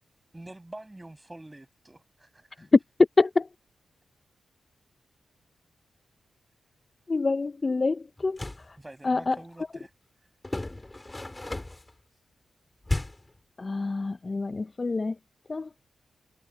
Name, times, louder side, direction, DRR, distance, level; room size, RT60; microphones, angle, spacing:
voice 1, 0.3-2.7 8.8-9.9, right 1 dB, 15° right, 6.3 m, -46 dB
voice 2, 7.1-8.4 9.0-9.3 13.6-15.1 15.5-15.7, left 3 dB, 35° left, 0.5 m, -27 dB
sound 1, 8.2-8.7 10.4-11.9 12.8-13.4, left 2 dB, 20° left, 4.6 m, -33 dB
cardioid pair, 65°, 0 cm